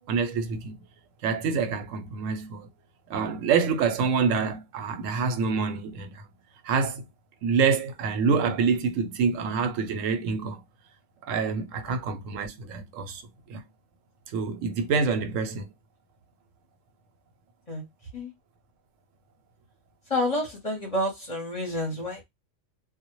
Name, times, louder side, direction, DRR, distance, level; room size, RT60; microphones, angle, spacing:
voice 1, 0.1-0.8 1.2-2.7 3.1-6.3 6.6-7.0 7.4-10.6 11.3-13.2 13.5-13.6 14.3-15.7, right 5 dB, 90° right, 1.0 m, -26 dB
voice 2, 20.1-22.2, left 1 dB, 35° left, 0.7 m, -29 dB
2.1 x 2.1 x 2.9 m
omnidirectional pair, 1.3 m